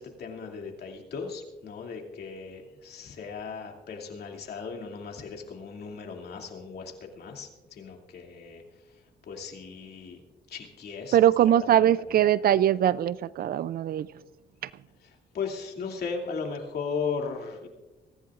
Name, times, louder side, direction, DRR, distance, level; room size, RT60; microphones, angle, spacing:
voice 1, 0.0-8.6 8.9-10.2 10.5-12.2 15.0-17.7, left 5 dB, 60° left, 1 dB, 2.6 m, -37 dB
voice 2, 11.1-14.1, right 11 dB, 55° right, 19 dB, 0.4 m, -22 dB
23.0 x 14.5 x 2.5 m, 1.1 s
cardioid pair, 120°, 18 cm